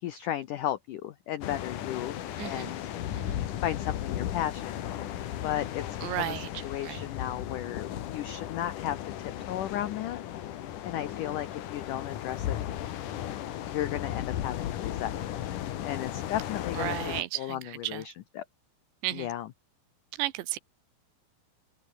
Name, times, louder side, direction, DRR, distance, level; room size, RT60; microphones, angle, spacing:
voice 1, 0.0-2.8 3.6-5.0 5.4-5.8 6.2-6.3 6.6-10.2 10.8-12.6 13.7-15.1 15.8-17.0 17.4-18.5 19.1-19.5, left 12 dB, 85° left, 1.8 m, -34 dB
sound 1, 1.4-17.2, left 11 dB, 60° left, 2.4 m, -35 dB
voice 2, 2.4-2.7 3.2-3.4 6.0-7.1 16.7-18.1 19.0-19.3 20.2-20.6, right 16 dB, 80° right, 3.4 m, -34 dB
omnidirectional pair, 5.1 m